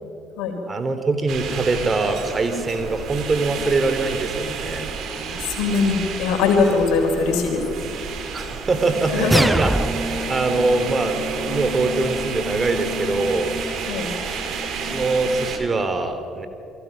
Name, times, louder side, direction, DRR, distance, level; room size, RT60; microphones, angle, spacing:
voice 1, 0.7-4.9 8.3-9.7 10.3-13.5 14.8-16.5, right 3 dB, 35° right, 8 dB, 3.2 m, -23 dB
sound 1, 1.3-15.6, right 4 dB, 60° right, 3.1 m, -30 dB
voice 2, 5.2-7.6 8.8-9.5 13.9-14.1, left 4 dB, 70° left, 3 dB, 4.2 m, -21 dB
sound 2, 9.3-10.3, right 1 dB, 10° right, 0.8 m, -20 dB
29.5 x 23.5 x 5.9 m, 2.6 s
hypercardioid pair, 50°, 0 cm